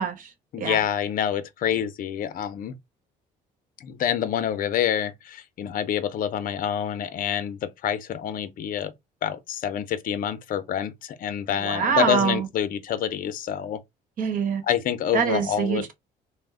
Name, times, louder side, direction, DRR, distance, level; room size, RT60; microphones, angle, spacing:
voice 1, 0.0-0.8 11.6-12.5 14.2-14.6 15.1-15.9, right 6 dB, 55° right, 1.0 m, -25 dB
voice 2, 0.5-2.8 3.8-8.9 9.2-13.8 14.7-15.8, left 9 dB, 55° left, 0.6 m, -27 dB
3.1 x 2.1 x 3.6 m
cardioid pair, 110°, 17 cm